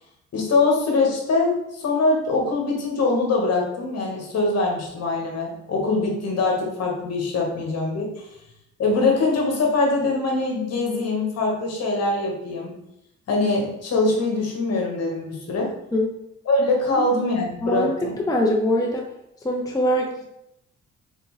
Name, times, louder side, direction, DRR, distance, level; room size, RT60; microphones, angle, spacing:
voice 1, 0.3-8.2 8.8-12.7 13.3-15.7 16.5-18.1, left 3 dB, 55° left, -1 dB, 1.4 m, -23 dB
voice 2, 17.6-19.1 19.4-20.2, equal, 10° left, 0 dB, 0.6 m, -23 dB
4.0 x 3.4 x 3.1 m, 0.81 s
cardioid pair, 90°, 30 cm